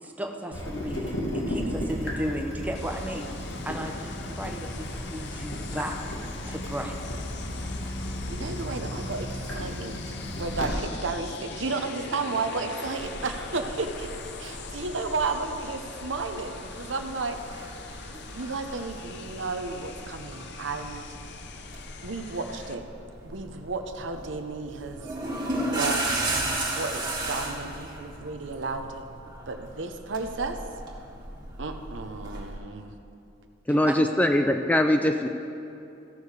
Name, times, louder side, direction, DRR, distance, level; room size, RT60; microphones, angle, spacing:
voice 1, 0.0-3.3 3.6-5.9 6.5-6.9 10.7-10.8 33.7-33.9, equal, 10° right, 2 dB, 0.8 m, -35 dB
Water tap faucet / Drip, 0.5-10.7, equal, 90° left, 1.8 m, -34 dB
sound 1, 2.8-22.8, left 4 dB, 60° left, 0.7 m, -42 dB
voice 2, 8.3-9.3 9.5-14.1 14.4-17.4 18.3-21.1 22.0-22.8 23.2-25.0 25.6-29.0 29.5-30.6 31.6-32.9, right 3 dB, 70° right, 6 dB, 0.8 m, -33 dB
sound 2, 13.0-32.6, right 2 dB, 25° right, 1.6 m, -36 dB
voice 3, 33.7-35.3, left 1 dB, 10° left, 5 dB, 0.3 m, -22 dB
15.5 x 6.5 x 4.9 m, 2.8 s
head